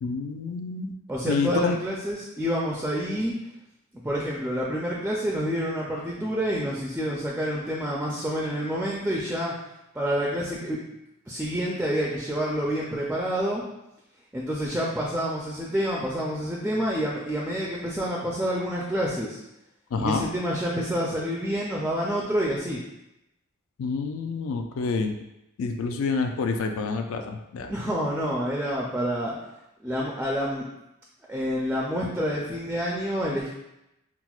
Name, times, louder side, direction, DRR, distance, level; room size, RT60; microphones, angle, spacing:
voice 1, 0.0-0.9 1.3-1.8 19.9-20.3 23.8-25.2 25.6-27.7, left 4 dB, 70° left, 5 dB, 0.3 m, -28 dB
voice 2, 1.1-3.3 4.0-9.5 9.9-10.8 11.3-13.6 14.3-19.4 20.0-22.8 27.7-29.3 29.8-30.7 31.3-33.5, equal, 5° right, -3 dB, 0.3 m, -28 dB
5.8 x 2.0 x 2.3 m, 0.88 s
head